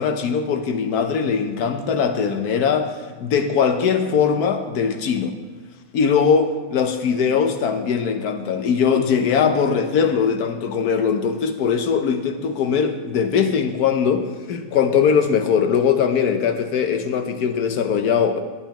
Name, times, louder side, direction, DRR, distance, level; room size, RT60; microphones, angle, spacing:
voice 1, 0.0-2.9 3.2-5.3 5.9-18.4, left 6 dB, 85° left, 7 dB, 1.4 m, -20 dB
16.0 x 9.1 x 3.0 m, 1.3 s
omnidirectional pair, 1.6 m